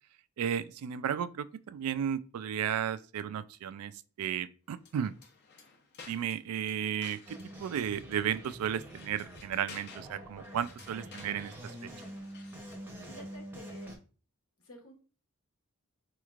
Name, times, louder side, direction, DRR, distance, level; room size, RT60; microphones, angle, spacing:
voice 1, 0.4-3.9 4.2-5.1 6.1-11.9, right 9 dB, 85° right, 0.3 m, -34 dB
sound 1, 4.8-12.9, left 4 dB, 50° left, 0.7 m, -54 dB
sound 2, 7.3-14.0, right 1 dB, 10° right, 0.7 m, -46 dB
voice 2, 13.1-13.9 14.6-14.9, equal, 75° left, 1.1 m, -50 dB
4.2 x 3.0 x 2.4 m
head